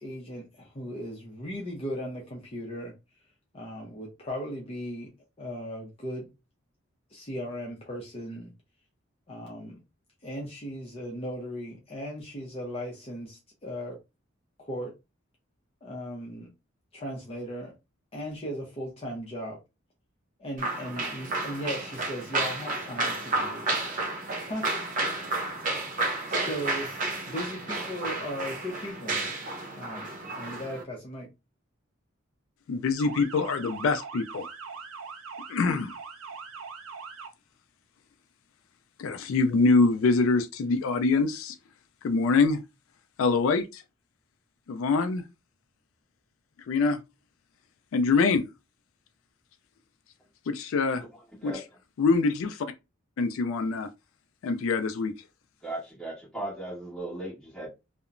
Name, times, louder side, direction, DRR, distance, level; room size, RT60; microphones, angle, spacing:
voice 1, 0.0-2.9 3.5-5.1 5.4-6.3 7.1-8.5 9.3-9.8 10.2-14.0 14.6-14.9 15.8-16.5 16.9-17.7 18.1-19.6 20.4-23.8 24.5-24.7 26.3-29.3 29.7-31.3, equal, 30° left, 0.6 m, -37 dB
sound 1, 20.6-30.8, right 2 dB, 40° right, 0.6 m, -31 dB
voice 2, 32.7-34.5 35.5-35.9 39.0-41.6 42.0-42.6 43.2-43.8 44.7-45.2 46.7-47.0 47.9-48.5 50.5-51.0 51.4-51.5 52.0-52.7 53.2-53.9 54.4-55.1, left 4 dB, 75° left, 0.3 m, -24 dB
Motor vehicle (road) / Siren, 33.0-37.3, right 5 dB, 85° right, 0.5 m, -41 dB
voice 3, 55.6-57.7, right 1 dB, ahead, 1.5 m, -37 dB
2.8 x 2.1 x 2.4 m
head